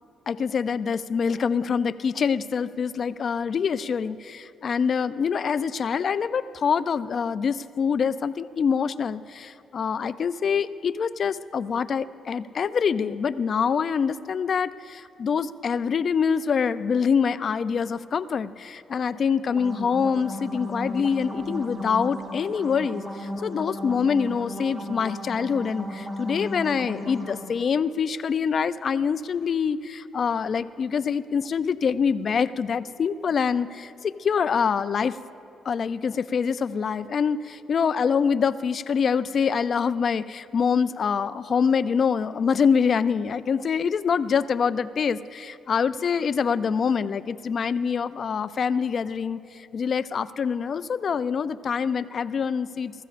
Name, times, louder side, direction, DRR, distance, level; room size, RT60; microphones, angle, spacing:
voice 1, 0.3-35.2 35.7-49.4 49.7-52.9, left 6 dB, 50° left, 14 dB, 0.4 m, -25 dB
sound 1, 19.4-27.4, left 1 dB, 35° right, 3.2 m, -35 dB
20.0 x 14.5 x 2.5 m, 2.6 s
cardioid pair, 90°, 0 cm